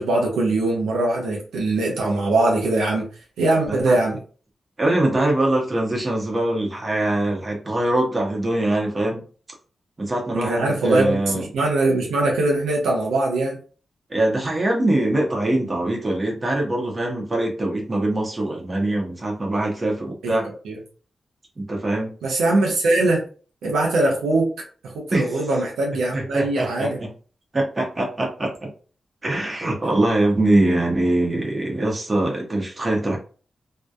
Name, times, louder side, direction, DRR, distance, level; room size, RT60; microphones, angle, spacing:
voice 1, 0.0-3.1 3.4-4.2 10.3-13.6 20.2-20.8 22.2-23.2 23.6-24.5 24.8-27.0 30.6-30.8, right 2 dB, 90° right, -1 dB, 0.6 m, -21 dB
voice 2, 4.8-9.2 10.0-11.4 14.1-20.4 21.6-22.1 25.1-25.3 26.1-27.1 27.5-28.7 29.2-33.2, right 1 dB, 40° right, 0 dB, 0.8 m, -23 dB
2.7 x 2.1 x 2.3 m, 0.39 s
supercardioid pair, 40°, 0 cm